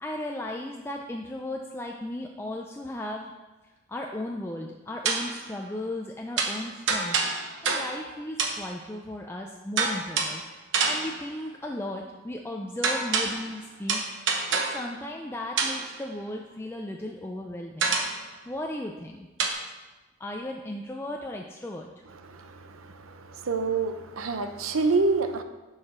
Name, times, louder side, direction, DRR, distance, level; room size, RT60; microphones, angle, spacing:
voice 1, 0.0-3.3 3.9-7.2 7.4-10.4 10.8-14.0 14.5-19.3 20.2-21.9, left 1 dB, 10° left, 1 dB, 0.4 m, -36 dB
sound 1, 5.1-5.4 6.4-8.1 8.4-8.7 9.8-10.5 10.7-11.3 12.8-13.6 13.9-14.9 15.6-16.0 17.8-18.3 19.4-19.5, right 4 dB, 65° right, 0.9 m, -27 dB
voice 2, 22.3-23.2 23.4-25.4, right 3 dB, 90° right, 8 dB, 0.7 m, -27 dB
7.2 x 4.9 x 5.9 m, 1.1 s
head